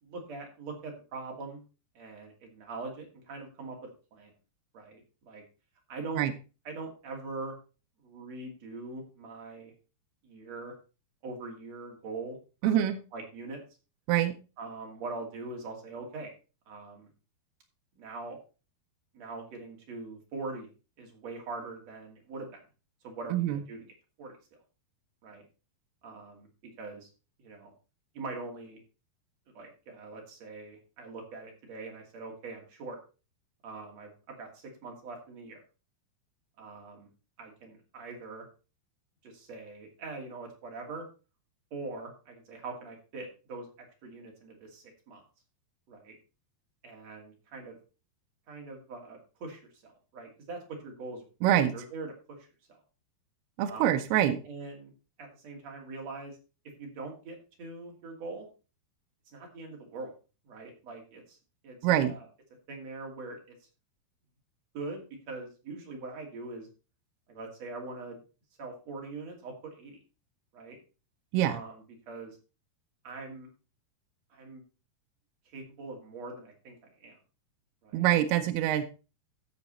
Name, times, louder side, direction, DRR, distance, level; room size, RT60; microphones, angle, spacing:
voice 1, 0.0-1.6 1.9-3.8 4.1-4.3 4.7-5.4 5.9-6.3 6.6-7.5 8.0-9.7 10.2-10.7 11.2-12.4 12.6-13.6 14.6-16.3 16.7-17.1 18.0-18.4 19.1-20.7 21.0-22.6 23.0-23.9 24.2-24.4 25.2-25.4 26.0-27.1 27.4-27.7 28.1-28.8 29.5-33.0 33.6-35.6 36.6-37.1 37.4-38.4 39.2-41.1 41.7-45.2 45.9-46.1 46.8-47.8 48.5-52.5 53.6-53.9 54.4-54.9 55.2-56.4 56.8-58.5 59.3-60.1 60.4-61.4 61.6-62.3 62.7-63.6 64.7-66.7 67.3-68.2 68.6-70.0 70.5-70.8 71.4-72.4 73.0-73.5 74.3-74.6 75.5-76.7 77.0-77.2 77.8-78.1, right 3 dB, 45° right, 1 dB, 3.3 m, -42 dB
voice 2, 12.6-13.0 14.1-14.3 23.3-23.6 51.4-51.7 53.6-54.4 61.8-62.1 71.3-71.6 77.9-78.8, right 12 dB, 80° right, 8 dB, 2.6 m, -25 dB
15.0 x 5.2 x 4.2 m, 0.33 s
omnidirectional pair, 4.8 m